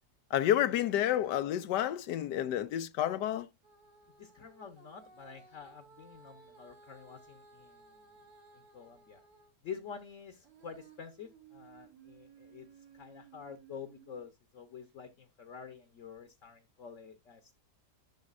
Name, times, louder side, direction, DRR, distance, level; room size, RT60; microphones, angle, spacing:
voice 1, 0.3-3.5, left 11 dB, 80° left, 1.2 m, -30 dB
Female singing, 3.6-9.6 10.0-14.3 14.9-15.0, right 5 dB, 70° right, 2.5 m, -59 dB
voice 2, 4.2-8.1 8.5-9.2 9.6-12.7 12.9-17.6, left 6 dB, 55° left, 1.1 m, -48 dB
10.5 x 6.4 x 2.4 m
omnidirectional pair, 1.8 m